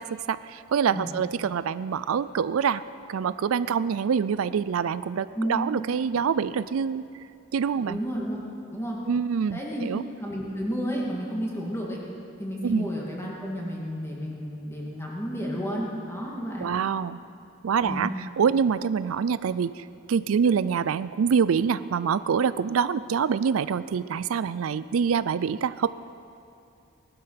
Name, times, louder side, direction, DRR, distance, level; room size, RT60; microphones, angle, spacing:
voice 1, 0.0-2.8 3.1-7.0 7.5-8.0 9.1-10.0 12.6-12.9 16.6-17.2 17.6-18.1 18.4-25.9, right 6 dB, 85° right, 15 dB, 0.4 m, -25 dB
voice 2, 7.9-8.4 8.7-9.0 9.5-9.9 10.2-12.0 12.4-16.7 17.8-18.1, equal, 10° left, -3 dB, 2.5 m, -31 dB
19.0 x 12.0 x 5.9 m, 2.6 s
head